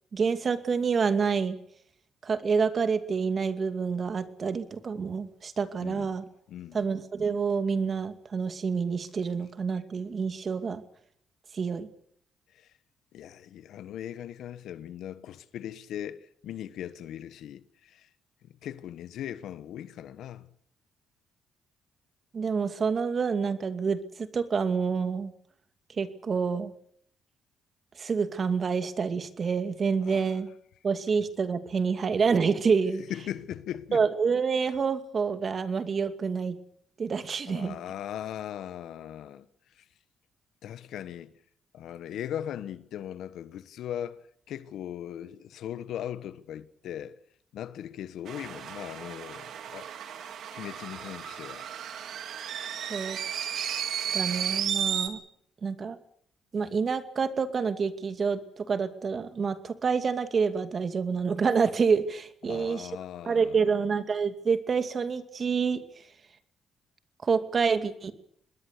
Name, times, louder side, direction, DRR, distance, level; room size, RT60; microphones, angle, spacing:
voice 1, 0.1-1.6 2.2-6.2 6.7-10.8 11.5-11.9 22.3-25.3 26.0-26.7 28.0-30.5 30.8-33.0 33.9-36.6 37.0-37.8 52.9-53.2 54.1-55.2 55.6-56.0 56.5-62.9 63.3-65.8 67.2-68.1, right 5 dB, 45° right, 2.4 m, -27 dB
voice 2, 5.8-6.1 6.5-6.8 12.5-12.7 13.1-18.1 18.6-20.5 30.0-30.3 33.1-34.0 37.5-39.5 39.8-39.9 40.6-41.3 41.7-47.2 47.5-49.9 50.5-51.7 62.4-63.7, left 10 dB, 75° left, 1.4 m, -39 dB
sound 1, 48.3-55.1, right 9 dB, 70° right, 2.8 m, -34 dB
25.5 x 20.5 x 6.8 m
cardioid pair, 80°, 0 cm